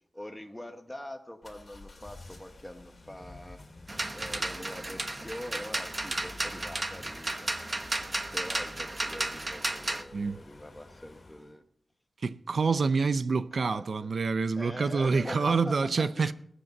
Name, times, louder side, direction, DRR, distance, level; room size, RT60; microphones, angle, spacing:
voice 1, 0.1-3.6 4.1-7.6 8.3-11.6 13.3-14.1 14.6-16.3, left 1 dB, 10° left, 0.9 m, -43 dB
sound 1, 1.4-11.6, left 2 dB, 40° left, 2.5 m, -50 dB
sound 2, 3.9-10.0, right 2 dB, 25° right, 1.1 m, -33 dB
voice 2, 12.2-16.3, right 4 dB, 65° right, 0.6 m, -27 dB
20.0 x 8.2 x 5.3 m
wide cardioid pair, 125°, 0 cm